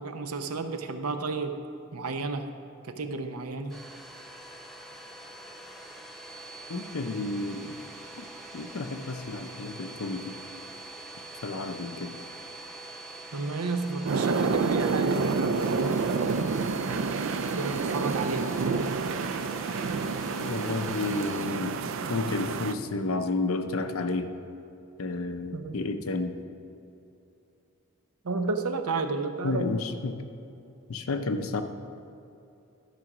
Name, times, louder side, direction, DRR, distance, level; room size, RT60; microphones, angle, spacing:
voice 1, 0.0-1.6 1.9-2.5 2.8-3.7 13.3-16.4 17.3-18.5 25.5-25.8 28.2-29.8, right 3 dB, 85° right, 7 dB, 0.7 m, -32 dB
Domestic sounds home sounds, 3.7-21.4, right 2 dB, ahead, 0.7 m, -44 dB
voice 2, 6.7-7.8 8.2-8.3 8.5-10.3 11.4-12.2 20.4-24.3 25.0-26.4 29.4-30.2 30.9-31.6, left 3 dB, 70° left, 8 dB, 0.6 m, -31 dB
sound 1, 14.1-22.7, right 4 dB, 60° right, 0.4 m, -28 dB
12.5 x 4.9 x 6.1 m, 2.7 s
head